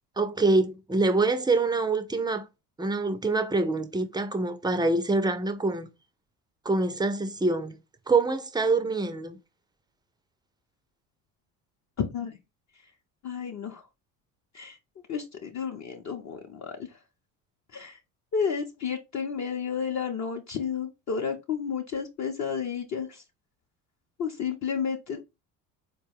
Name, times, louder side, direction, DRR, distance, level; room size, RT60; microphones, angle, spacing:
voice 1, 0.2-2.5 2.8-5.9 6.7-7.8 8.1-9.4, right 3 dB, 10° right, 0.4 m, -25 dB
voice 2, 12.0-12.4 13.2-13.9 14.5-14.8 15.1-17.0 17.7-18.0 18.3-23.2 24.2-25.2, left 6 dB, 40° left, 0.6 m, -31 dB
4.1 x 2.2 x 3.3 m
hypercardioid pair, 70°, 45 cm